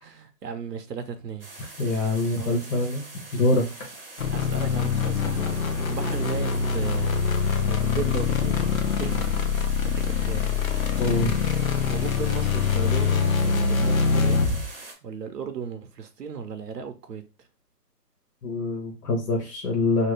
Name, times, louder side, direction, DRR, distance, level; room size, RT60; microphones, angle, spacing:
voice 1, 0.0-1.5 2.2-2.6 4.3-9.5 9.8-10.6 11.9-14.4 15.0-17.2, right 6 dB, 75° right, 0.8 m, -36 dB
sound 1, 1.4-14.9, right 2 dB, 35° right, 0.7 m, -43 dB
voice 2, 1.8-3.0 3.3-3.7 11.0-11.5 18.4-20.1, left 2 dB, 80° left, 1.3 m, -24 dB
sound 2, 4.2-14.7, left 6 dB, 60° left, 0.5 m, -24 dB
2.9 x 2.7 x 3.2 m
hypercardioid pair, 175°, 48 cm